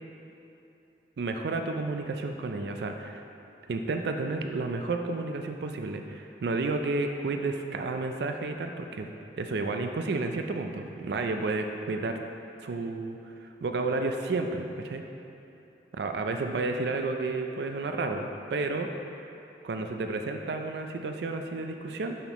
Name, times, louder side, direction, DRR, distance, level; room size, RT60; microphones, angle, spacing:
voice 1, 1.2-3.2 3.7-9.1 9.4-12.2 12.6-15.0 16.0-18.9 19.6-22.2, right 3 dB, 65° right, 5 dB, 0.4 m, -31 dB
6.9 x 5.8 x 3.0 m, 2.9 s
head